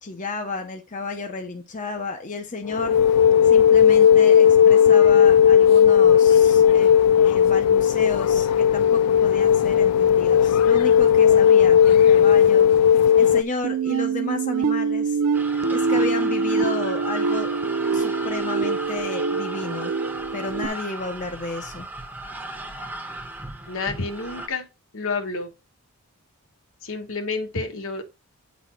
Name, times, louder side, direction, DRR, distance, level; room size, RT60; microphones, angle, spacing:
voice 1, 0.0-3.0 3.4-6.9 7.3-12.7 13.2-15.2 15.7-17.6 17.9-20.0 20.3-21.9, left 3 dB, 35° left, 0.8 m, -32 dB
sound 1, 2.7-13.4, left 8 dB, 90° left, 0.3 m, -15 dB
sound 2, 13.6-20.7, right 4 dB, 70° right, 0.5 m, -24 dB
sound 3, 15.3-24.5, right 1 dB, 10° right, 0.7 m, -36 dB
voice 2, 23.7-24.7 24.9-25.5 26.8-28.1, left 4 dB, 60° left, 1.3 m, -29 dB
9.4 x 4.2 x 4.5 m
head